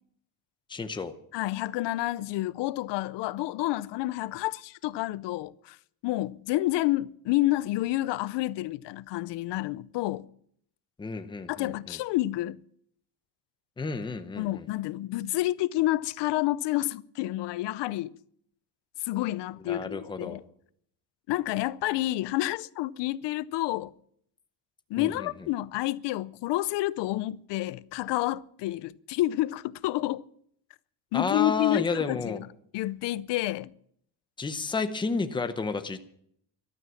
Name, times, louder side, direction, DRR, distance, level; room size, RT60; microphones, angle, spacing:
voice 1, 0.7-1.1 11.0-12.0 13.8-14.7 19.6-20.4 25.0-25.5 31.1-32.4 34.4-36.0, left 4 dB, 10° left, 0.8 m, -31 dB
voice 2, 1.3-5.8 6.0-10.3 11.5-12.6 14.4-18.1 19.0-20.4 21.3-23.9 24.9-30.2 31.1-32.4 32.7-33.7, left 16 dB, 70° left, 0.7 m, -29 dB
14.0 x 12.5 x 7.1 m
cardioid pair, 175°, 43 cm